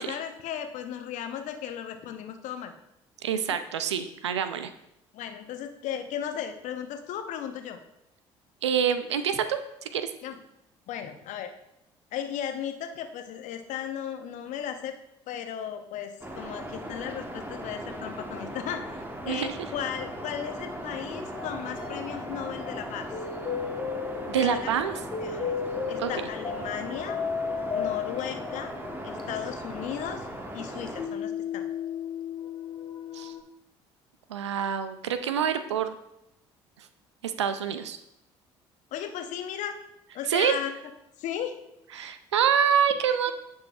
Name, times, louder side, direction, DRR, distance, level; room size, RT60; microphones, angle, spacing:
voice 1, 0.0-2.7 5.1-7.8 10.2-10.4 10.9-11.5 12.1-14.9 15.3-23.1 24.3-24.7 25.2-25.6 25.9-27.2 27.7-28.7 29.0-30.3 30.5-31.7 38.9-39.7 40.1-40.7 41.2-41.5, left 9 dB, 60° left, 7 dB, 0.8 m, -35 dB
voice 2, 3.2-4.7 8.6-10.1 19.3-19.6 24.3-25.0 26.0-26.3 33.1-33.3 34.3-36.0 37.2-38.0 40.3-40.5 41.9-43.3, right 8 dB, 90° right, 11 dB, 0.4 m, -26 dB
sound 1, 16.2-31.1, right 1 dB, 15° right, 1.2 m, -38 dB
sound 2, 21.4-33.4, left 6 dB, 35° left, 1.1 m, -35 dB
9.8 x 5.4 x 2.4 m, 0.84 s
hypercardioid pair, 55°, 14 cm